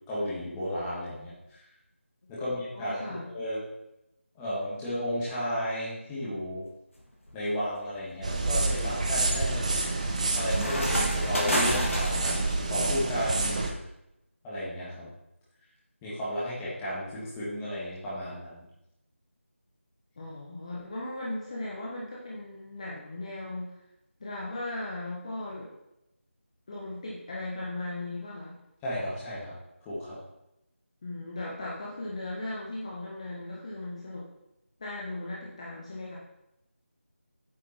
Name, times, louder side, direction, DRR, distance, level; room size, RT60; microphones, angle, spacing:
voice 1, 0.1-1.6 2.3-3.6 4.3-6.6 7.3-9.7 10.3-12.3 12.7-13.8 14.4-15.1 16.0-18.6 28.8-29.5 29.8-30.2, equal, 10° left, -10 dB, 1.6 m, -33 dB
voice 2, 2.4-3.3 20.2-23.7 24.2-25.7 26.7-28.6 31.0-34.3 34.8-36.2, left 2 dB, 30° left, -5 dB, 1.2 m, -37 dB
sound 1, 7.0-7.4 7.9-12.6, equal, 70° left, 2.0 m, -32 dB
sound 2, 8.2-13.7, right 2 dB, 30° right, 0.8 m, -28 dB
8.7 x 5.0 x 4.3 m, 0.86 s
figure-of-eight pair, 170°, 7 cm